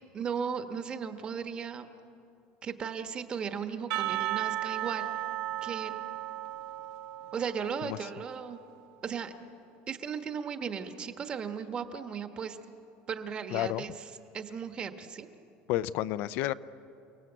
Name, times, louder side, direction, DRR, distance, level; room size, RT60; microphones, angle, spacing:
voice 1, 0.1-1.9 2.6-5.1 5.6-6.0 7.3-8.6 9.0-9.3 9.9-12.6 13.1-13.9 14.3-15.3, right 6 dB, 25° right, 8 dB, 1.2 m, -36 dB
Percussion / Church bell, 3.9-8.5, right 15 dB, 65° right, 1.2 m, -35 dB
voice 2, 13.5-13.8 15.7-16.5, left 14 dB, 55° left, 15 dB, 0.5 m, -30 dB
29.0 x 18.5 x 8.0 m, 2.7 s
cardioid pair, 170°, 4 cm